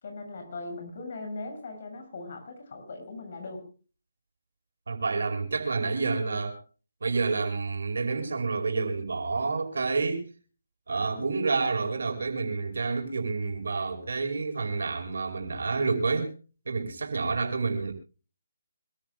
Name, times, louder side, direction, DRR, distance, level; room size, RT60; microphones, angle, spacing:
voice 1, 0.0-3.7, left 2 dB, 50° left, 6.9 m, -39 dB
voice 2, 4.9-6.6 7.0-10.3 10.9-16.3 16.7-17.9, right 4 dB, 75° right, 5.2 m, -29 dB
26.0 x 14.0 x 2.3 m
hypercardioid pair, 160°, 0 cm